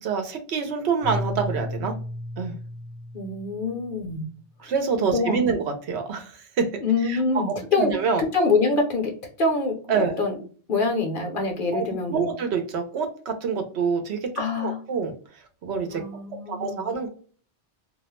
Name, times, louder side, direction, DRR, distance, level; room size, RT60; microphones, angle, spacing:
voice 1, 0.0-1.9 2.4-2.6 4.6-6.7 7.0-8.2 9.9-10.2 11.7-14.3 14.6-15.1 15.6-16.0 16.5-17.1, right 5 dB, 70° right, 6 dB, 0.8 m, -26 dB
Keyboard (musical), 1.0-4.1, left 1 dB, 45° right, 0.7 m, -34 dB
voice 2, 3.1-4.3 5.1-5.6 6.8-7.9 8.3-9.1 9.4-10.3 10.7-12.3 14.4-14.8 15.9-16.9, left 3 dB, 55° left, 3 dB, 0.7 m, -25 dB
2.3 x 2.0 x 2.9 m, 0.42 s
omnidirectional pair, 1.2 m